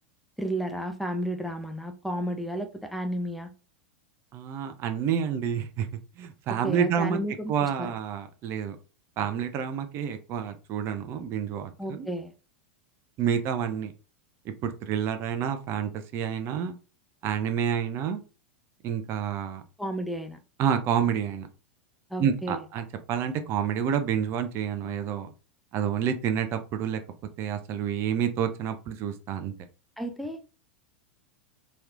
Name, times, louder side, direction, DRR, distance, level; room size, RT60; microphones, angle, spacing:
voice 1, 0.4-3.5 6.6-7.9 11.8-12.3 19.8-20.4 22.1-22.6 30.0-30.4, right 1 dB, ahead, 6 dB, 0.6 m, -32 dB
voice 2, 4.3-5.9 6.2-7.2 7.5-8.8 9.2-12.1 13.2-13.9 14.6-16.8 17.2-18.2 18.8-19.6 20.6-21.5 22.2-25.3 25.7-27.0 27.4-29.5, right 8 dB, 40° right, 8 dB, 0.6 m, -29 dB
3.1 x 3.0 x 2.5 m, 0.33 s
hypercardioid pair, 95°, 6 cm